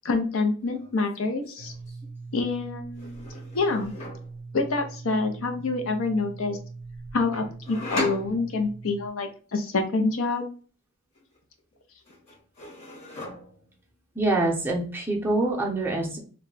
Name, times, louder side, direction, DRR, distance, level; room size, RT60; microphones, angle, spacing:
voice 1, 0.0-1.7 2.3-3.3 3.5-3.9 4.5-6.6 7.1-10.5, left 3 dB, 65° left, 6 dB, 0.6 m, -27 dB
sound 1, 0.6-2.0 3.0-4.3 7.3-8.9 11.1-11.8 12.0-13.8, left 1 dB, 30° left, 1.0 m, -37 dB
sound 2, 1.6-9.1, right 3 dB, 80° right, 0.4 m, -42 dB
voice 2, 14.1-16.2, right 2 dB, 10° right, -1 dB, 0.6 m, -25 dB
2.3 x 2.1 x 3.8 m, 0.40 s
head